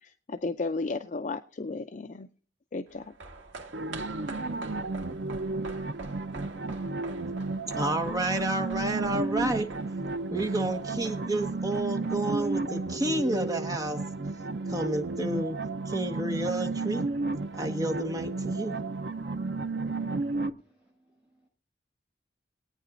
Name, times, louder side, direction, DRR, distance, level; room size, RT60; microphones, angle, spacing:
voice 1, 0.0-2.3 2.7-3.1, left 3 dB, 40° left, 0.5 m, -34 dB
sound 1, 2.9-13.4 13.7-13.8, right 3 dB, 80° right, 1.6 m, -46 dB
sound 2, 3.7-20.5, right 3 dB, 65° right, 0.8 m, -33 dB
voice 2, 7.7-9.7 10.3-14.0 14.7-15.6 15.9-17.0 17.6-18.8, right 1 dB, 20° right, 1.4 m, -30 dB
voice 3, 20.6-21.5, right 1 dB, 5° right, 7.8 m, -67 dB
21.5 x 9.2 x 2.5 m
head